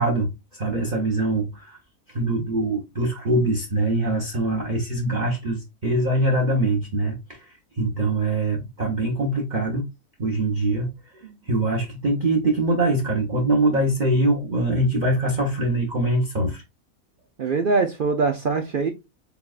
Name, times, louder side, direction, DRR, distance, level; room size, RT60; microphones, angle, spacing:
voice 1, 0.0-1.8 2.1-7.4 7.8-9.9 10.2-10.9 11.5-16.6, right 1 dB, 40° right, 0.9 m, -23 dB
voice 2, 17.4-18.9, right 4 dB, 60° right, 0.5 m, -22 dB
6.9 x 2.3 x 2.3 m
omnidirectional pair, 1.5 m